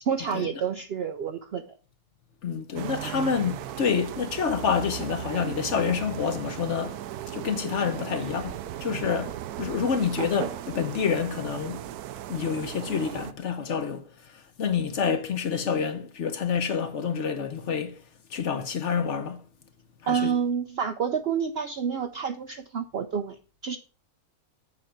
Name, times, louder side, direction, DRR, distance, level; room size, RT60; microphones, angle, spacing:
voice 1, 0.0-1.6 8.9-9.0 20.1-23.4 23.6-23.8, right 7 dB, 65° right, 0.6 m, -28 dB
voice 2, 2.4-7.0 7.3-11.9 12.3-18.0 18.3-19.4 20.0-20.3, left 6 dB, 55° left, 1.1 m, -28 dB
sound 1, 2.8-13.3, right 12 dB, 80° right, 1.1 m, -37 dB
7.8 x 5.2 x 5.7 m
omnidirectional pair, 1.6 m